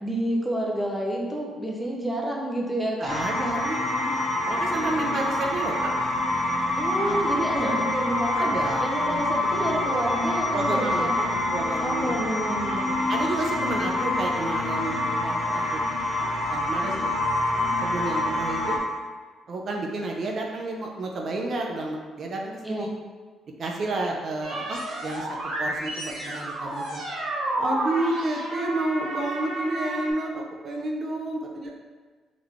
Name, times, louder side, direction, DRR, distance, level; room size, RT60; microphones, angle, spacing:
voice 1, 0.0-3.3 4.8-5.1 6.8-8.5 8.8-11.3 11.8-12.9 22.6-22.9 31.5-31.6, right 1 dB, ahead, -2 dB, 0.8 m, -29 dB
voice 2, 3.0-4.1 4.4-6.0 7.0-7.8 8.4-9.2 10.5-11.1 11.5-12.2 12.6-15.9 16.2-17.2 17.8-18.8 19.5-22.9 23.6-27.0 27.6-31.7, right 2 dB, 55° right, 0 dB, 0.5 m, -31 dB
sound 1, 3.1-18.8, left 1 dB, 60° left, 1.4 m, -26 dB
sound 2, 24.4-30.1, right 1 dB, 85° right, 1.3 m, -31 dB
3.7 x 3.4 x 3.5 m, 1.4 s
cardioid pair, 90°, 0 cm